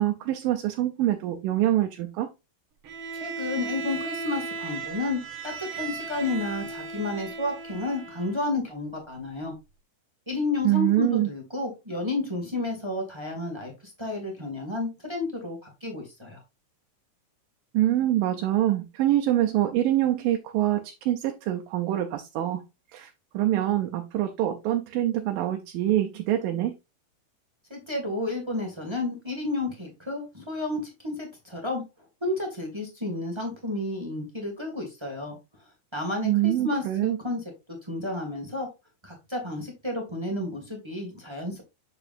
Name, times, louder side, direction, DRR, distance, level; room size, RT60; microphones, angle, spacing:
voice 1, 0.0-2.3 10.6-11.3 17.7-22.6 22.9-26.7 36.2-37.2, right 13 dB, 85° right, 2.5 m, -25 dB
Bowed string instrument, 2.8-8.5, right 4 dB, 55° right, 1.6 m, -36 dB
voice 2, 3.1-9.5 10.3-13.7 14.0-16.4 27.7-31.8 32.2-35.4 35.9-37.4 37.8-38.7 39.0-41.6, left 2 dB, 15° right, 1.2 m, -31 dB
7.0 x 6.8 x 2.6 m
omnidirectional pair, 3.9 m